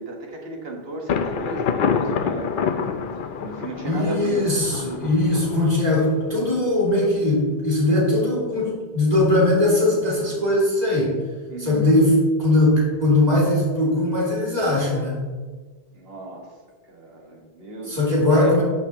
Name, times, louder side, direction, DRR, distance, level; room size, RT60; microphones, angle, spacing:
voice 1, 0.0-2.9 3.4-4.7 11.5-11.9 15.9-16.5 16.8-18.0 18.3-18.6, right 2 dB, 75° right, 0 dB, 1.6 m, -34 dB
Thunder, 1.1-6.7, left 6 dB, 60° left, 0.7 m, -27 dB
voice 2, 3.8-11.1 11.6-15.2 17.9-18.6, left 1 dB, 40° right, -5 dB, 2.7 m, -20 dB
12.5 x 6.1 x 2.9 m, 1.5 s
omnidirectional pair, 1.0 m